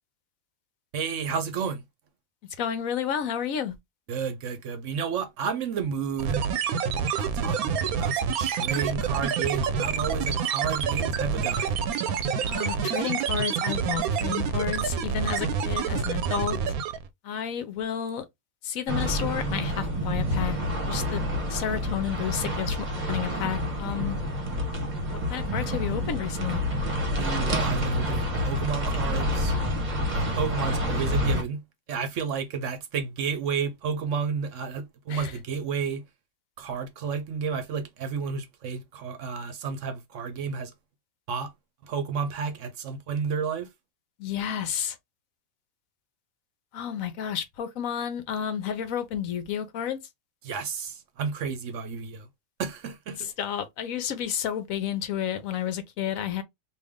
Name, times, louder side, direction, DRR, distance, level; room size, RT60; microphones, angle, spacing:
voice 1, 0.9-1.8 4.1-6.4 7.2-11.8 27.2-29.6 30.1-31.6 31.9-36.0 36.6-40.7 41.3-41.5 41.9-43.7 50.4-52.3 52.6-53.3, right 6 dB, 65° right, 1.0 m, -31 dB
voice 2, 2.6-3.7 12.4-16.6 17.2-18.2 18.6-20.6 20.9-24.2 25.3-26.6 35.1-35.4 44.2-45.0 46.7-50.0 53.2-56.4, left 9 dB, 70° left, 1.1 m, -31 dB
sound 1, 6.2-17.1, right 6 dB, 85° right, 1.1 m, -27 dB
sound 2, 18.9-31.4, equal, 35° right, 1.0 m, -28 dB
3.3 x 2.6 x 3.5 m
omnidirectional pair, 1.5 m